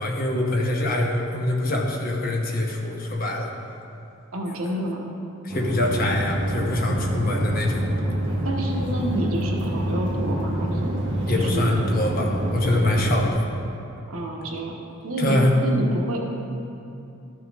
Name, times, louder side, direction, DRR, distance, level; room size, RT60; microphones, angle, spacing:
voice 1, 0.0-3.5 4.6-4.7 5.4-7.8 11.3-13.4 15.2-15.5, left 1 dB, 40° left, 0 dB, 1.0 m, -24 dB
voice 2, 4.3-5.0 8.4-10.9 11.3-11.7 14.1-14.8 15.0-16.3, right 1 dB, 90° right, 0 dB, 1.2 m, -28 dB
sound 1, 5.5-13.3, right 1 dB, 55° right, 1.4 m, -26 dB
13.0 x 6.2 x 3.5 m, 2.6 s
head